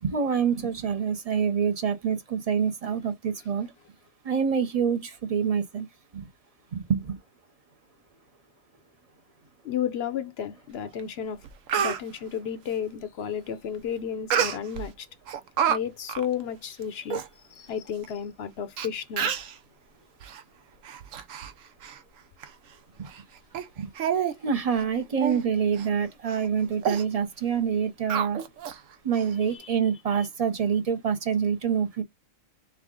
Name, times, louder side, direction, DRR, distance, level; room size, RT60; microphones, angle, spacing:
voice 1, 0.0-3.7 4.2-5.9 6.1-6.3 6.7-7.2 23.0-23.1 23.8-23.9 24.4-28.4 29.0-32.0, right 7 dB, 40° right, 0.6 m, -26 dB
voice 2, 9.6-11.5 11.8-15.1 15.7-19.3 29.5-29.7 30.1-30.3, left 8 dB, 60° left, 0.7 m, -33 dB
Speech, 11.0-11.1 11.4-12.0 14.3-14.9 15.3-15.8 16.1-16.3 16.8-16.9 17.1-17.3 18.0-18.1 18.8-18.9 19.2-19.5 20.2-20.4 20.8-21.5 21.8-22.0 22.4-22.5 23.1-23.2 23.5-23.7 24.0-24.4 24.7-24.8 25.2-25.4 25.8-25.9 26.3-26.5 26.8-27.0 28.1-28.8 29.1-29.2, right 8 dB, 80° right, 1.1 m, -28 dB
3.5 x 3.4 x 3.6 m
omnidirectional pair, 1.3 m